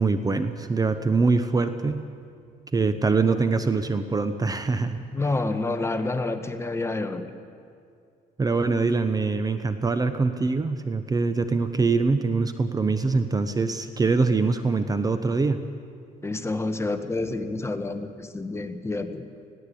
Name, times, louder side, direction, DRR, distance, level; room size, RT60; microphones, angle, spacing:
voice 1, 0.0-2.0 2.7-5.0 8.4-15.6, right 4 dB, 20° right, 10 dB, 0.9 m, -23 dB
voice 2, 4.8-7.3 16.2-19.3, left 2 dB, 15° left, 8 dB, 1.3 m, -29 dB
20.0 x 16.0 x 8.5 m, 2.3 s
cardioid pair, 110°, 17 cm